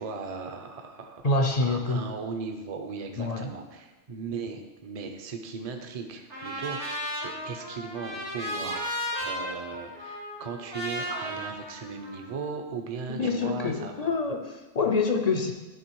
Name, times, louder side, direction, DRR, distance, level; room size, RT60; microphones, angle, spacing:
voice 1, 0.0-14.2, right 5 dB, 40° right, 5 dB, 0.7 m, -38 dB
voice 2, 1.2-2.0 3.2-3.5 13.1-15.5, left 3 dB, 45° left, 4 dB, 0.6 m, -26 dB
Trumpet, 6.3-12.5, equal, 80° right, 2.7 m, -35 dB
10.5 x 3.6 x 4.6 m, 1.2 s
omnidirectional pair, 1.1 m